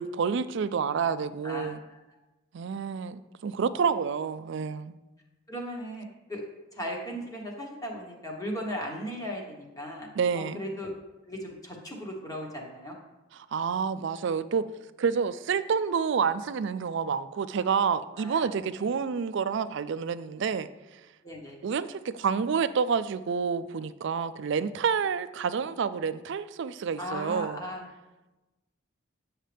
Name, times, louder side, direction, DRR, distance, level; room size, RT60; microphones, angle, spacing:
voice 1, 0.0-1.8 2.5-4.9 10.2-10.6 13.5-14.7 15.0-20.7 21.6-27.6, right 6 dB, 60° right, 14 dB, 0.4 m, -28 dB
voice 2, 1.4-2.0 5.5-6.4 6.7-10.1 10.3-10.9 11.3-13.0 18.2-18.9 21.2-21.6 27.0-27.8, equal, 15° left, -1 dB, 1.3 m, -37 dB
9.0 x 6.4 x 3.4 m, 1.1 s
head